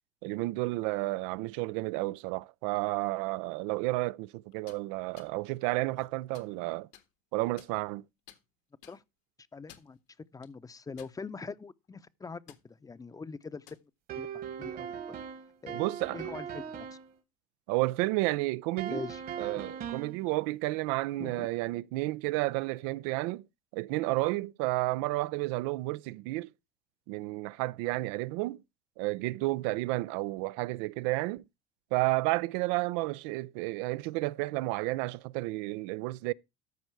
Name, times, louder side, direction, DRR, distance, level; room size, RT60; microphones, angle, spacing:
voice 1, 0.2-6.9 7.3-8.0 15.7-16.2 17.7-19.0 19.4-23.4 23.7-26.5 27.1-28.6 29.0-31.4 31.9-36.3, right 20 dB, 75° right, 0.4 m, -31 dB
sound 1, 4.5-4.8 5.2-5.3 5.9-6.5 6.9-7.1 7.6-8.0 8.3-8.4 8.8-9.0 9.5-10.0 10.4-10.5 11.0-11.5 11.8-12.0 12.5-12.6 13.4-13.8, left 12 dB, 70° left, 1.6 m, -55 dB
voice 2, 9.5-10.0 10.3-13.6 14.2-15.2 15.6-15.8 16.1-17.0 18.9-19.2 21.2-21.5, left 4 dB, 20° left, 0.7 m, -43 dB
sound 2, 14.1-17.1 18.8-20.2, right 8 dB, 55° right, 1.7 m, -39 dB
13.5 x 5.3 x 4.6 m
hypercardioid pair, 80°, 19 cm